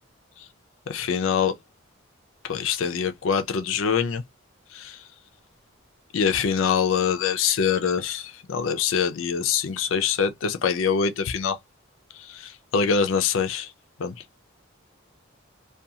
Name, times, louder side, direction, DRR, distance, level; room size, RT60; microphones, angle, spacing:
voice 1, 0.9-1.5 2.5-4.2 4.8-4.9 6.1-11.6 12.7-13.7 14.0-14.1, left 6 dB, 75° left, 0.5 m, -24 dB
2.4 x 2.3 x 2.7 m
head